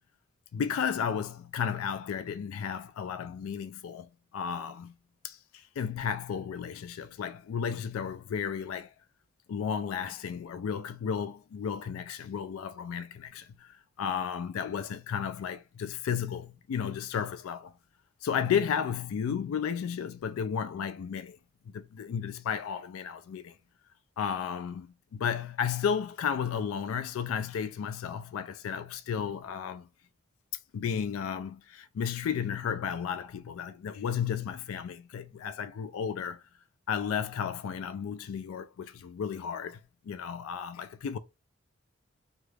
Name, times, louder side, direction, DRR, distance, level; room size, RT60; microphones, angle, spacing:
voice 1, 0.5-4.9 5.2-8.9 9.5-17.7 18.2-21.4 21.7-23.5 24.2-29.9 30.7-36.4 36.9-41.2, left 7 dB, 90° left, 0.3 m, -33 dB
3.0 x 2.3 x 3.2 m
head